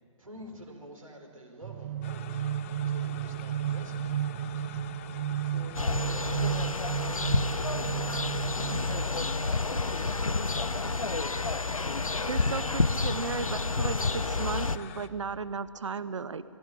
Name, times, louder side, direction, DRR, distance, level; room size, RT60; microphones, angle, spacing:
voice 1, 0.2-2.4 2.9-4.7 5.4-9.6, equal, 85° right, 2 dB, 4.3 m, -48 dB
sound 1, 1.6-9.5, right 10 dB, 25° right, 0.4 m, -33 dB
sound 2, 2.0-15.1, left 12 dB, 25° left, 0.6 m, -46 dB
voice 2, 2.8-3.2 5.1-5.6, right 5 dB, 45° right, 3 dB, 2.9 m, -56 dB
sound 3, 5.7-14.8, left 3 dB, 90° left, 0.7 m, -29 dB
voice 3, 11.9-16.4, right 5 dB, 65° right, 15 dB, 0.8 m, -35 dB
19.5 x 16.5 x 10.0 m, 2.4 s
figure-of-eight pair, 135°, 17 cm